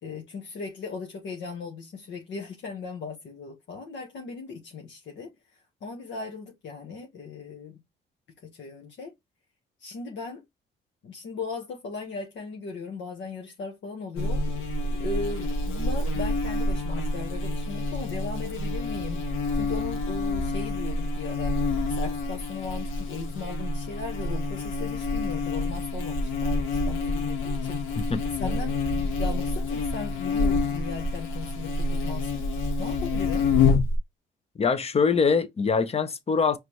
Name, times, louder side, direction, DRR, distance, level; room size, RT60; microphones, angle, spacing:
voice 1, 0.0-5.3 5.8-7.7 8.4-9.1 9.8-10.4 11.0-14.4 15.0-19.2 19.5-21.6 21.9-28.1 28.3-32.4 32.8-33.5, left 4 dB, 70° left, 1.2 m, -37 dB
Buzz, 14.2-34.0, left 3 dB, 85° left, 1.5 m, -27 dB
voice 2, 28.0-28.6 34.6-36.6, left 5 dB, 30° left, 0.7 m, -24 dB
5.0 x 3.2 x 3.0 m
cardioid pair, 90°, 20 cm